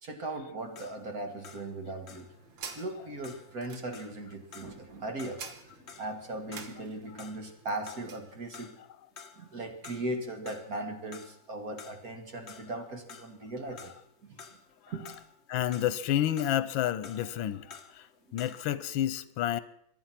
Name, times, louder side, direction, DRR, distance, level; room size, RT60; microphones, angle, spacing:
voice 1, 0.0-2.3 2.8-5.4 6.0-8.7 9.4-13.9 14.2-14.4 14.9-15.1, right 2 dB, 50° right, 2.2 m, -38 dB
sound 1, 0.6-7.6 7.9-8.9 9.2-10.2 10.5-18.8, left 6 dB, 45° left, 1.1 m, -51 dB
sound 2, 1.7-8.3, right 6 dB, 75° right, 2.1 m, -49 dB
voice 2, 15.5-18.1 18.3-19.6, left 12 dB, 85° left, 1.5 m, -30 dB
24.0 x 9.2 x 5.9 m
omnidirectional pair, 2.1 m